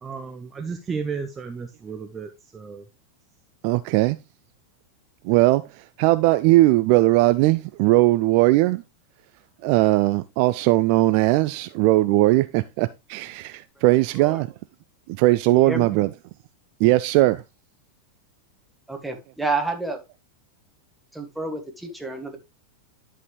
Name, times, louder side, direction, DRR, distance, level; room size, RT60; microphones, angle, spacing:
voice 1, 0.0-2.8, right 5 dB, 20° right, 0.7 m, -33 dB
voice 2, 3.6-4.2 5.2-5.6 6.0-8.8 9.6-14.5 15.2-16.1 16.8-17.4, right 18 dB, 45° right, 0.3 m, -19 dB
voice 3, 15.5-16.0 18.9-20.0 21.1-22.4, right 3 dB, 5° right, 1.6 m, -30 dB
10.5 x 5.4 x 3.1 m
figure-of-eight pair, 90°, 0 cm